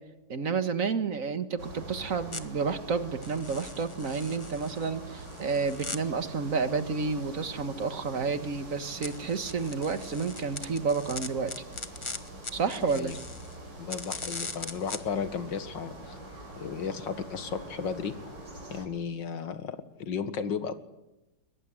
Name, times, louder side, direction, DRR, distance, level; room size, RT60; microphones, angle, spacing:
voice 1, 0.3-11.5 12.5-13.1, right 5 dB, 50° right, 10 dB, 1.9 m, -30 dB
sound 1, 1.6-18.8, right 1 dB, 75° right, 6.6 m, -45 dB
sound 2, 2.3-2.4 3.2-6.0 9.0-13.6 13.9-15.0, left 3 dB, 20° left, 1.1 m, -40 dB
voice 2, 13.8-16.2 16.6-18.1 18.7-20.8, left 6 dB, 80° left, 10 dB, 2.3 m, -34 dB
22.5 x 21.0 x 9.9 m, 1.0 s
omnidirectional pair, 1.9 m